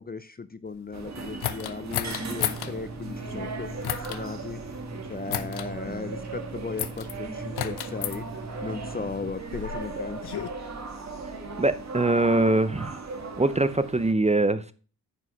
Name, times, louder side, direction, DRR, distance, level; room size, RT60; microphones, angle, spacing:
voice 1, 0.0-4.6 5.1-8.3 8.6-10.5, left 4 dB, 25° left, 0.6 m, -36 dB
sound 1, 0.9-14.1, right 4 dB, 40° right, 1.9 m, -38 dB
sound 2, 1.4-2.7 3.8-4.2 5.3-5.7 6.8-7.1 7.6-8.2 9.1-10.5, left 11 dB, 70° left, 0.8 m, -32 dB
sound 3, 2.0-9.3, right 2 dB, 75° right, 3.8 m, -40 dB
voice 2, 11.6-13.0 13.4-14.7, right 2 dB, 15° right, 0.6 m, -23 dB
9.8 x 4.9 x 5.4 m
cardioid pair, 75°, 41 cm